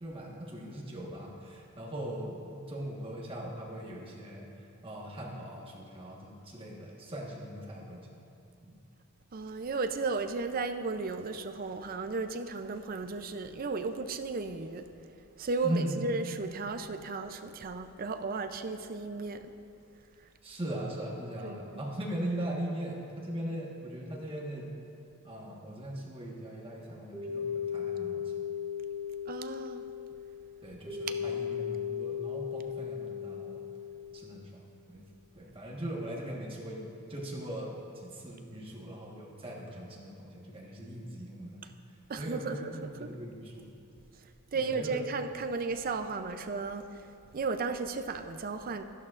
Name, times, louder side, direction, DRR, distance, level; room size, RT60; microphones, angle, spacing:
voice 1, 0.0-8.1 8.6-8.7 15.6-16.0 20.4-24.7 25.2-28.2 30.6-33.6 34.1-35.0 35.3-41.6 42.1-43.7 44.5-45.0, right 1 dB, 25° right, -3 dB, 1.3 m, -39 dB
voice 2, 9.3-14.9 15.4-19.5 21.4-21.9 29.3-29.8 42.1-43.1 44.5-48.8, right 4 dB, 40° right, 8 dB, 0.5 m, -35 dB
sound 1, 27.1-34.4, left 8 dB, 10° right, 1.7 m, -37 dB
14.0 x 11.5 x 2.5 m, 2.6 s
head